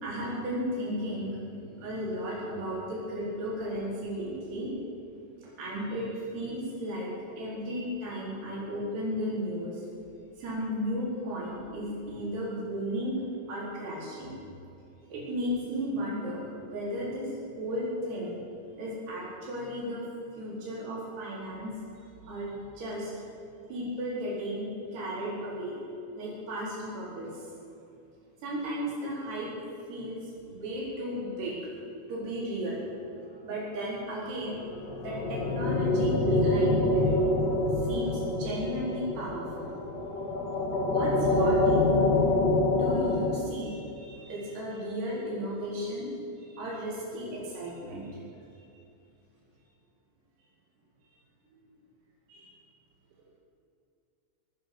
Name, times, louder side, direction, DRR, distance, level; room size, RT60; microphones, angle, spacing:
voice 1, 0.0-4.7 5.6-9.8 10.4-13.2 13.5-14.4 15.1-16.4 16.7-18.4 18.8-20.0 20.3-21.7 22.3-23.1 23.7-25.8 26.2-27.5 28.4-29.5 29.9-31.7 32.1-32.8 33.4-34.6 35.0-37.2 37.8-39.8 40.8-42.0 42.7-43.7 44.3-46.1 46.6-48.2, equal, 55° right, -5 dB, 6.3 m, -34 dB
sound 1, 34.5-43.4, left 2 dB, 50° left, 2.1 m, -26 dB
voice 2, 43.6-44.3 46.5-46.6 52.3-52.5, right 2 dB, 85° right, -3 dB, 4.1 m, -56 dB
20.5 x 9.4 x 6.9 m, 2.6 s
omnidirectional pair, 5.6 m